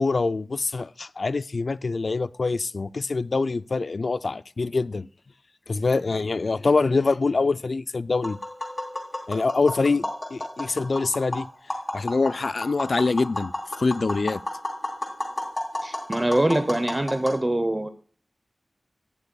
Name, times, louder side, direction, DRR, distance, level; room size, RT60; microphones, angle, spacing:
voice 1, 0.0-5.1 5.7-8.4 9.3-10.0 10.3-11.5 11.9-13.5 13.8-14.4, left 3 dB, 65° left, 0.3 m, -24 dB
Tap, 8.1-17.4, left 1 dB, 30° left, 3.2 m, -33 dB
voice 2, 15.8-17.9, right 1 dB, 20° right, 0.8 m, -23 dB
18.0 x 6.7 x 2.3 m
wide cardioid pair, 90°, 0 cm